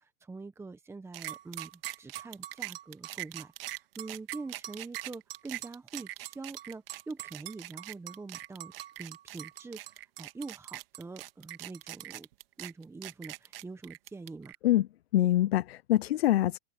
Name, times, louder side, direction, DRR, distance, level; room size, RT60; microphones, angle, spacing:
voice 1, 0.0-8.7 9.0-12.3 12.6-14.5, right 3 dB, 10° right, 1.3 m, -44 dB
sound 1, 1.1-14.6, right 15 dB, 70° right, 2.1 m, -42 dB
voice 2, 14.6-16.6, left 14 dB, 85° left, 0.5 m, -25 dB
open air
hypercardioid pair, 120°, 30 cm